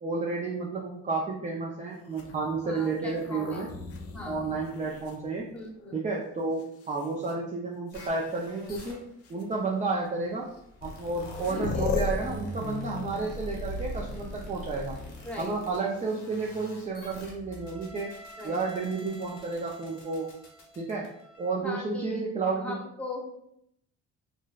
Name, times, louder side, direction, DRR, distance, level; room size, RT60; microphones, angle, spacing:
voice 1, 0.0-3.7 4.3-5.5 5.9-10.5 10.8-15.0 15.4-18.1 18.4-20.3 20.8-21.1 21.4-22.8, right 3 dB, 25° right, -2 dB, 0.4 m, -31 dB
sound 1, 2.1-5.9 6.6-7.3 8.4-8.5 9.2-9.4 10.6-10.7 10.8-15.3 17.2-17.9, left 3 dB, 50° left, 0.5 m, -37 dB
voice 2, 2.6-3.6 4.1-4.5 5.5-6.0 11.5-11.9 15.2-15.6 18.4-18.6 21.6-23.3, left 2 dB, 5° left, -3 dB, 0.8 m, -39 dB
sound 2, 7.9-21.5, left 2 dB, 80° left, 1.0 m, -48 dB
3.8 x 2.1 x 2.3 m, 0.76 s
cardioid pair, 90°, 30 cm